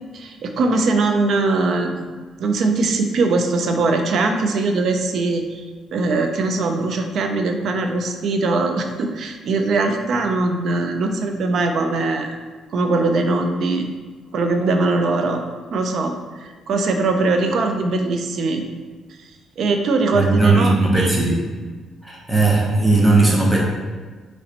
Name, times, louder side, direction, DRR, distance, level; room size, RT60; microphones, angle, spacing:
voice 1, 0.1-2.1 2.4-5.6 5.9-12.4 12.7-13.9 14.3-15.4 15.7-18.6 19.6-21.1, right 3 dB, 65° right, 5 dB, 0.5 m, -21 dB
voice 2, 20.1-21.4 22.0-23.6, right 3 dB, 10° right, -4 dB, 0.9 m, -17 dB
4.9 x 3.1 x 2.9 m, 1.4 s
cardioid pair, 90°, 0 cm